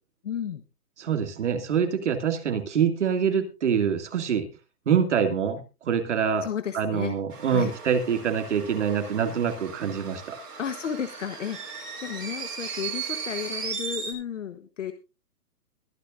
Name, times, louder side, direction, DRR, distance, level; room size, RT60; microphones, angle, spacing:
voice 1, 0.2-0.6 6.4-7.1 7.5-7.7 10.6-14.9, left 8 dB, 50° left, 8 dB, 1.2 m, -33 dB
voice 2, 1.0-4.5 4.9-6.5 6.7-10.4, right 7 dB, 50° right, 7 dB, 2.5 m, -25 dB
sound 1, 7.3-14.1, right 6 dB, 90° right, 7.7 m, -37 dB
22.5 x 10.0 x 2.6 m, 0.29 s
hypercardioid pair, 175°, 46 cm